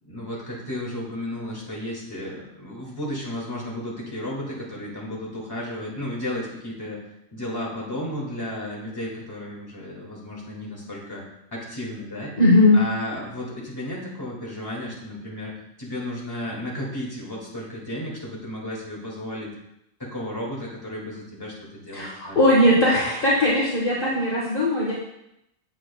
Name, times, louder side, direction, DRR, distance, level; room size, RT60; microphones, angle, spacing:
voice 1, 0.0-12.3 12.7-19.5 20.0-22.7, left 1 dB, 15° left, -5 dB, 2.1 m, -33 dB
voice 2, 12.4-12.8 21.9-24.9, left 1 dB, 40° left, -6 dB, 1.5 m, -19 dB
8.3 x 7.6 x 2.3 m, 0.82 s
omnidirectional pair, 1.5 m